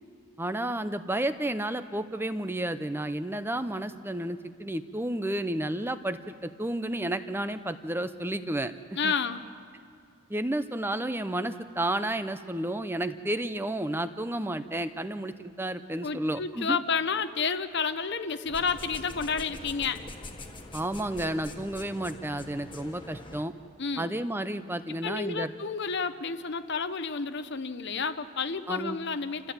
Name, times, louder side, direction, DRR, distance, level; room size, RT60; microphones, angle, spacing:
voice 1, 0.4-8.7 9.0-9.1 10.3-16.8 20.7-23.5 24.0-25.5 28.7-29.0, right 1 dB, 10° right, 11 dB, 0.6 m, -31 dB
voice 2, 9.0-9.5 16.0-20.0 23.8-24.1 24.9-29.5, left 5 dB, 50° left, 11 dB, 0.9 m, -30 dB
sound 1, 18.4-23.4, left 2 dB, 20° left, 1.7 m, -44 dB
29.5 x 14.5 x 8.8 m, 2.4 s
head